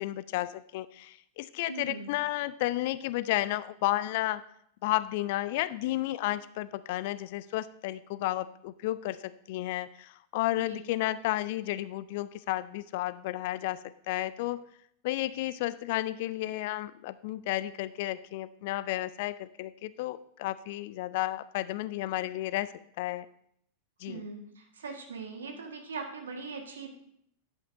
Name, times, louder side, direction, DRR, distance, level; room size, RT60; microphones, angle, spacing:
voice 1, 0.0-4.4 4.8-13.8 14.1-14.6 15.0-22.7 23.0-23.3 24.0-24.2, left 16 dB, 50° left, 17 dB, 0.4 m, -32 dB
voice 2, 1.7-2.1 10.5-10.8 24.0-27.1, right 4 dB, 65° right, 3 dB, 1.6 m, -41 dB
10.5 x 8.5 x 2.7 m, 0.69 s
figure-of-eight pair, 90°, 0 cm